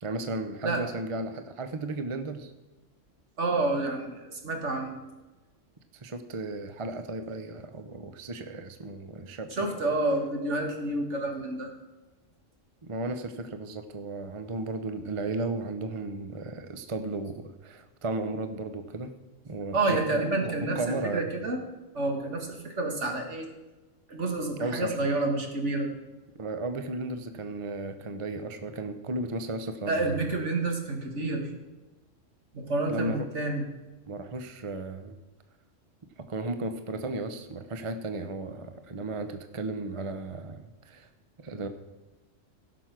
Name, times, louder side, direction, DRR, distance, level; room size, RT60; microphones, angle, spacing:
voice 1, 0.0-2.5 5.9-9.8 12.8-19.1 19.4-21.3 24.6-25.0 26.4-30.2 32.9-33.3 34.1-35.1 36.2-41.1 41.4-41.7, right 2 dB, 30° right, 8 dB, 0.7 m, -35 dB
voice 2, 3.4-5.0 9.5-11.7 19.7-21.6 21.9-23.5 24.1-25.9 29.9-31.5 32.5-33.6, right 2 dB, 65° right, 2 dB, 2.1 m, -29 dB
16.0 x 6.1 x 6.0 m, 1.1 s
omnidirectional pair, 1.3 m